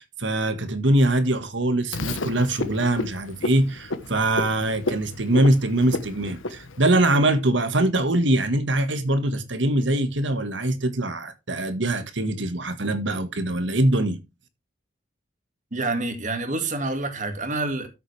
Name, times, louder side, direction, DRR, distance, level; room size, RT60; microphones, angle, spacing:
voice 1, 0.0-14.2, right 1 dB, 70° right, 1.7 m, -23 dB
Frog, 1.9-7.1, left 2 dB, 85° left, 1.2 m, -32 dB
voice 2, 15.7-17.9, right 2 dB, 40° right, 2.1 m, -27 dB
13.5 x 7.6 x 3.4 m
head